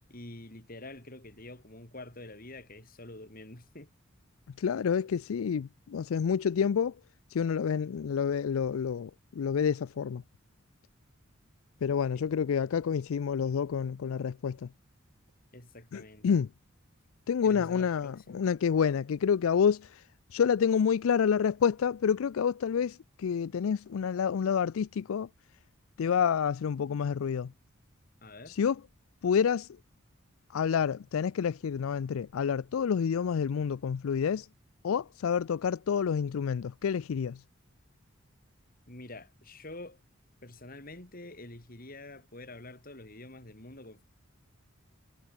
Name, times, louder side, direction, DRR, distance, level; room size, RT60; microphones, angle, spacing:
voice 1, 0.1-3.9 12.1-12.3 15.5-16.3 17.4-18.5 28.2-28.6 38.9-40.0 40.4-44.0, left 2 dB, 45° left, 4.0 m, -47 dB
voice 2, 4.6-6.9 7.3-10.2 11.8-14.7 15.9-16.5 17.3-20.0 20.3-25.3 26.0-27.5 28.5-28.8 29.2-29.7 30.5-34.5 34.8-37.4, left 7 dB, 90° left, 0.4 m, -28 dB
head